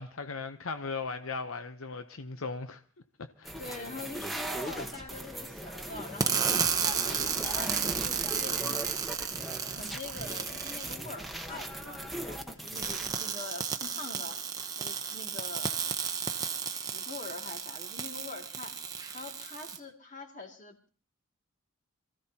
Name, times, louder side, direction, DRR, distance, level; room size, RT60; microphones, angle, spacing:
voice 1, 0.0-2.8 3.4-3.6, left 4 dB, 80° left, 0.8 m, -37 dB
sound 1, 3.4-13.1, right 1 dB, ahead, 1.1 m, -39 dB
voice 2, 3.6-9.0 9.7-14.4 14.8-15.8 16.7-18.7 19.1-20.9, left 3 dB, 35° left, 2.4 m, -44 dB
sound 2, 6.2-10.9 12.7-19.8, right 6 dB, 15° right, 0.8 m, -33 dB
26.5 x 15.0 x 2.9 m
head